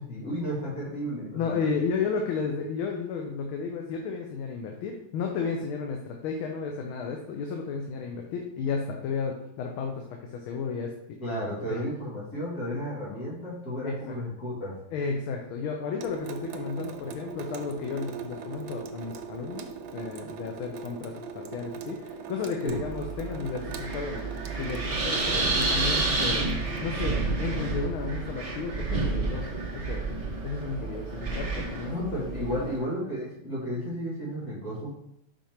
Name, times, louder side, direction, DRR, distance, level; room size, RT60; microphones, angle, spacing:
voice 1, 0.0-1.7 11.2-14.8 22.6-22.8 31.9-34.9, equal, 45° left, -6 dB, 2.5 m, -33 dB
voice 2, 1.3-11.2 11.7-11.8 13.8-14.2 14.9-24.3 24.6-26.5 26.8-29.5 29.7-30.0 30.4-32.7, left 5 dB, 85° left, 2 dB, 1.6 m, -33 dB
Water tap faucet / Sink (filling or washing) / Drip, 16.0-26.8, right 5 dB, 80° right, 1.4 m, -40 dB
Wind, 22.7-32.8, right 3 dB, 40° right, 0.5 m, -30 dB
5.3 x 5.1 x 4.4 m, 0.79 s
omnidirectional pair, 2.2 m